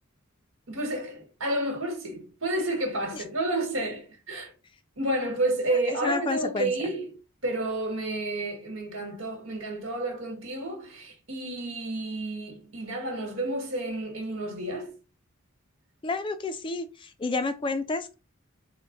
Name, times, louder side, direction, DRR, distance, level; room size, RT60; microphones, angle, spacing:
voice 1, 0.7-4.5 5.0-7.2 7.4-14.9, right 1 dB, 75° right, 1.4 m, -30 dB
voice 2, 5.9-6.7 16.0-18.1, left 3 dB, 25° left, 0.4 m, -30 dB
4.0 x 2.1 x 3.7 m
head